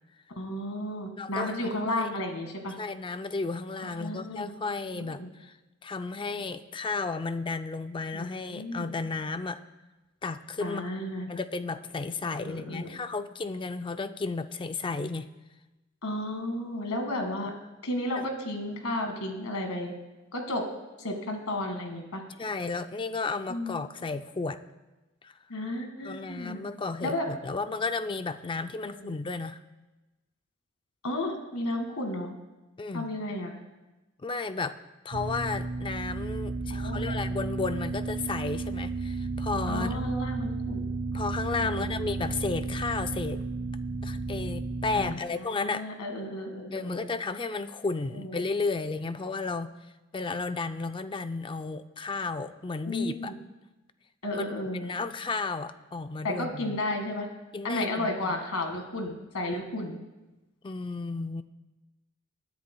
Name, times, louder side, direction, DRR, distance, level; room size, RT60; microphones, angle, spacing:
voice 1, 0.4-2.7 3.8-4.5 4.9-5.3 8.1-8.9 10.6-11.3 12.4-12.9 16.0-17.5 17.8-19.9 20.3-20.6 21.0-22.2 23.5-23.8 25.5-26.6 27.0-27.3 28.8-29.1 31.0-32.3 32.9-33.5 36.7-37.2 39.7-40.9 41.6-42.0 44.9-47.1 48.1-48.4 52.8-53.4 54.2-54.9 56.2-57.3 57.6-60.0, left 1 dB, 75° left, 4 dB, 1.9 m, -33 dB
voice 2, 1.2-2.1 2.8-5.5 5.8-9.6 10.2-10.8 11.3-15.3 18.1-18.2 22.4-24.6 25.2-25.3 26.0-29.6 32.8-33.1 34.2-34.8 35.0-40.0 41.1-43.4 44.0-45.9 46.7-49.7 50.1-53.3 54.3-54.4 54.8-56.8 57.5-58.3 60.6-61.4, left 3 dB, 25° left, 10 dB, 0.4 m, -33 dB
sound 1, 35.1-45.1, right 3 dB, 55° right, 0.9 m, -33 dB
21.5 x 10.5 x 2.2 m, 1.1 s
head